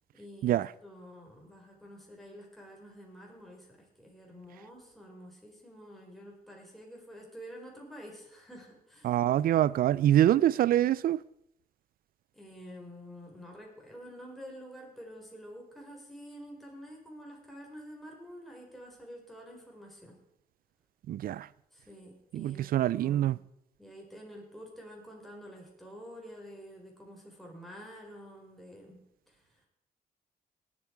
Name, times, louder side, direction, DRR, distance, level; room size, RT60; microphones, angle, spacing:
voice 1, 0.1-9.2 12.3-20.2 21.7-23.4 23.8-29.7, equal, ahead, 4.6 m, -49 dB
voice 2, 9.0-11.2 21.1-21.5 22.3-23.4, right 12 dB, 65° right, 0.4 m, -25 dB
19.0 x 8.4 x 4.6 m
cardioid pair, 105°, 16 cm